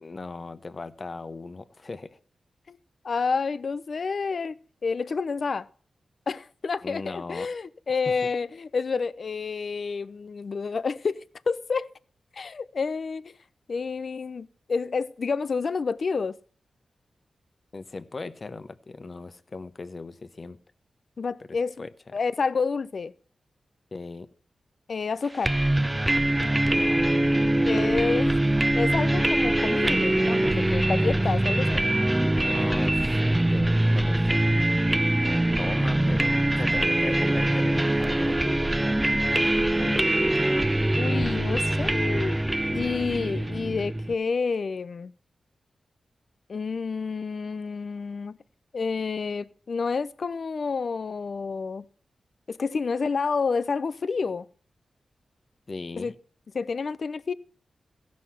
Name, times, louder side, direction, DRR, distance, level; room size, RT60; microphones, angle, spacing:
voice 1, 0.0-2.2 6.8-7.5 17.7-20.6 21.5-21.9 23.9-24.3 26.6-27.1 32.4-33.0 33.5-34.4 35.6-39.0 55.7-56.1, left 3 dB, 45° left, 0.9 m, -38 dB
voice 2, 3.0-4.5 4.8-5.7 6.3-11.9 12.3-13.4 13.7-16.4 21.2-21.8 22.1-23.1 24.9-25.5 27.6-28.3 28.7-31.9 39.8-40.0 41.0-42.4 42.7-45.1 46.5-48.4 48.7-51.8 52.5-54.5 56.0-56.1 56.5-57.3, left 5 dB, 65° left, 0.4 m, -29 dB
sound 1, 25.4-44.1, right 1 dB, 15° right, 0.6 m, -23 dB
15.5 x 6.3 x 5.7 m
cardioid pair, 65°, 0 cm